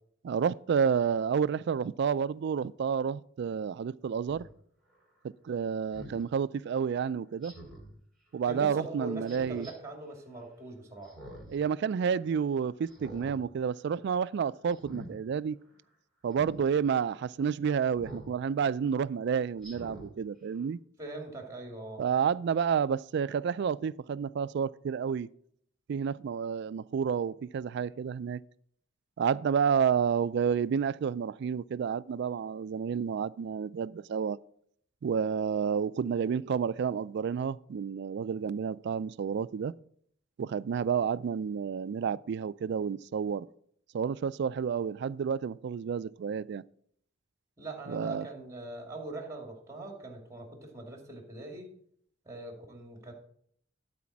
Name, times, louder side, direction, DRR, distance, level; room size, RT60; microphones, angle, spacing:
voice 1, 0.2-4.5 5.4-7.5 8.3-9.7 11.5-15.6 16.2-20.8 22.0-25.3 25.9-28.4 29.2-34.4 35.0-39.7 40.4-43.5 43.9-46.6 47.9-48.3, right 7 dB, 60° right, 0.3 m, -30 dB
Speech synthesizer, 4.3-4.5 5.9-6.2 7.4-7.9 9.3-9.7 11.0-11.6 12.0-12.1 12.9-13.4 13.8-14.1 14.7-15.1 16.3-16.6 18.0-18.3 18.8-18.9 19.6-20.1 20.6-20.7, right 1 dB, ahead, 3.4 m, -46 dB
voice 2, 8.4-11.1 21.0-22.0 47.6-51.7 52.3-53.1, right 2 dB, 15° right, 2.2 m, -42 dB
12.5 x 4.2 x 6.0 m
head